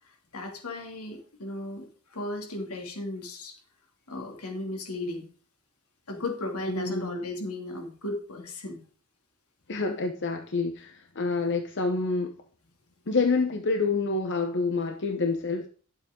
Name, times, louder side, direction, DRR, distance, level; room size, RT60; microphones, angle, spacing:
voice 1, 0.0-3.6 4.1-5.3 6.1-8.8, left 2 dB, 80° left, 2.7 m, -36 dB
voice 2, 6.7-7.2 9.7-12.3 13.1-15.7, left 3 dB, 55° left, 0.9 m, -27 dB
11.5 x 7.8 x 3.8 m
head